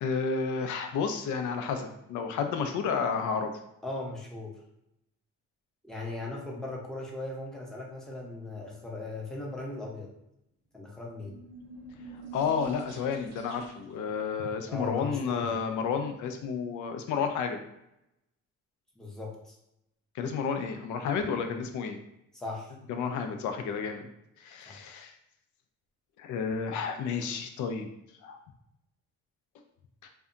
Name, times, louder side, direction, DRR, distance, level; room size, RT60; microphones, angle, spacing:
voice 1, 0.0-3.5 12.1-17.6 20.1-22.0 22.9-24.1 24.4-25.1 26.2-27.9 28.2-28.4, left 6 dB, 75° left, 6 dB, 0.5 m, -31 dB
voice 2, 3.8-4.5 5.8-10.1 10.7-11.4 14.7-15.6 19.0-19.6 22.3-22.7 24.7-24.8, left 2 dB, ahead, -3 dB, 0.6 m, -38 dB
sound 1, 11.1-14.0, right 2 dB, 85° right, 0.8 m, -46 dB
2.7 x 2.2 x 2.4 m, 0.82 s
cardioid pair, 90°, 30 cm